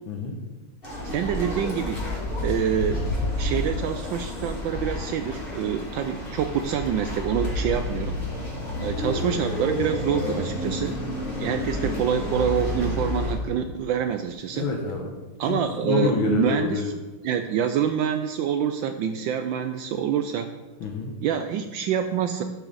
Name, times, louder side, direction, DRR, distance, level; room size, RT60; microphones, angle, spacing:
sound 1, 0.8-13.3, left 2 dB, 25° left, 3.1 m, -30 dB
voice 1, 1.0-2.0 2.4-3.1 3.4-8.2 8.8-10.9 11.4-14.7 15.4-16.9 17.2-20.5 21.2-22.4, right 8 dB, 75° right, 8 dB, 1.2 m, -26 dB
voice 2, 14.5-15.1 15.5-16.8 20.8-21.1, left 4 dB, 70° left, 1 dB, 1.8 m, -27 dB
11.5 x 6.9 x 4.0 m, 1.3 s
omnidirectional pair, 2.4 m